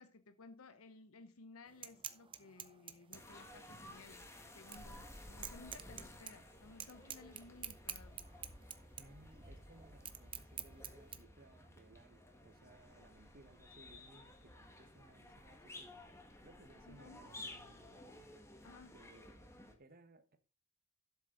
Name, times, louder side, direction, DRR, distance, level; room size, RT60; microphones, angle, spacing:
voice 1, 0.0-8.2 16.8-17.2 18.6-18.9, left 3 dB, 75° left, 0.8 m, -58 dB
sound 1, 1.7-11.2, right 8 dB, 25° right, 0.7 m, -50 dB
sound 2, 3.1-19.8, left 1 dB, 15° left, 1.5 m, -55 dB
voice 2, 9.0-16.1 16.4-18.3 18.9-19.4 19.8-20.4, right 2 dB, 45° right, 1.2 m, -63 dB
12.0 x 7.1 x 3.8 m
head